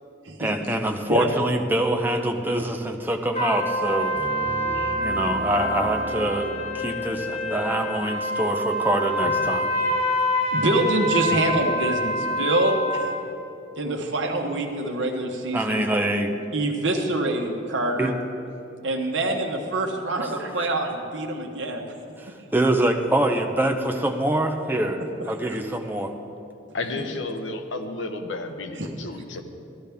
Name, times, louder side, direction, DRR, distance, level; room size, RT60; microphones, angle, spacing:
voice 1, 0.4-4.2 5.0-9.7 15.5-16.4 18.0-18.2 20.2-20.3 20.6-20.7 22.2-25.0 25.3-26.1, right 1 dB, 10° right, 4 dB, 0.6 m, -25 dB
sound 1, 3.3-13.2, equal, 30° left, 0.8 m, -26 dB
Piano, 4.1-9.7, right 1 dB, 60° left, 1.7 m, -38 dB
voice 2, 10.5-13.1 13.8-15.9 16.5-18.1 18.8-21.9 28.8-28.9, right 2 dB, 75° right, 3 dB, 1.1 m, -25 dB
voice 3, 26.7-29.4, left 2 dB, 80° left, 6 dB, 0.8 m, -32 dB
14.0 x 11.5 x 3.5 m, 2.6 s
head